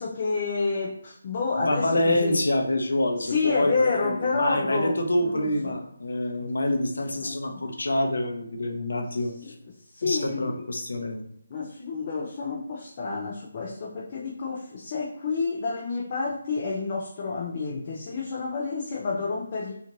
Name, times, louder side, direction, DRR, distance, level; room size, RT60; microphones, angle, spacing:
voice 1, 0.0-2.4 3.2-5.8 7.2-7.6 9.4-9.5 9.9-10.7 11.5-19.7, left 4 dB, 30° left, -3 dB, 0.4 m, -29 dB
voice 2, 1.5-9.5 10.0-11.2, left 1 dB, 75° left, 4 dB, 0.6 m, -26 dB
2.9 x 2.5 x 2.5 m, 0.70 s
hypercardioid pair, 170°, 0 cm